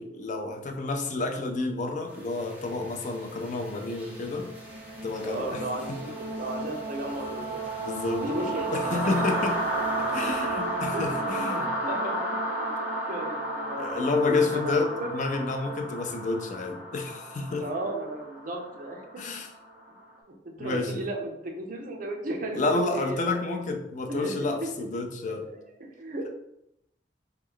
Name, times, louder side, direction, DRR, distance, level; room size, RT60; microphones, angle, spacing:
voice 1, 0.0-4.5 5.0-5.6 5.9-6.0 7.8-8.2 8.7-9.6 10.0-11.7 13.8-17.7 19.2-19.5 20.6-21.0 22.6-25.5, left 3 dB, 45° left, 4 dB, 0.4 m, -30 dB
sound 1, 2.2-20.0, right 1 dB, 10° right, 0.8 m, -33 dB
voice 2, 5.2-7.6 8.2-9.1 10.1-10.5 10.9-15.1 17.6-19.2 20.3-23.6 24.1-24.7 25.5-25.6 26.0-26.3, right 1 dB, 50° right, 2 dB, 0.6 m, -35 dB
3.0 x 2.2 x 3.6 m, 0.82 s
head